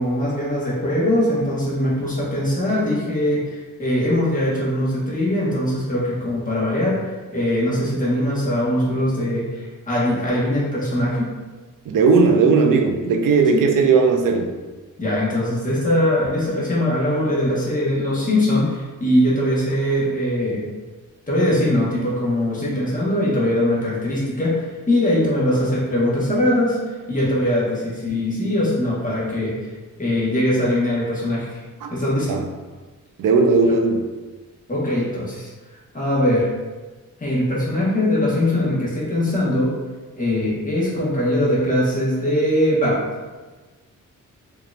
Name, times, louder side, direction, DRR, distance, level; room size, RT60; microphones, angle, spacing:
voice 1, 0.0-7.0 7.3-11.3 13.5-13.7 15.0-20.6 21.3-26.8 27.1-29.7 30.0-31.6 31.9-32.3 34.7-35.5 35.9-36.5 37.2-39.7 40.2-43.0, left 1 dB, 25° left, -6 dB, 1.5 m, -21 dB
voice 2, 11.9-14.5 31.8-31.9 32.3-32.4 33.2-34.0, right 4 dB, 90° right, 4 dB, 0.5 m, -17 dB
4.7 x 2.9 x 2.5 m, 1.3 s
cardioid pair, 85°, 32 cm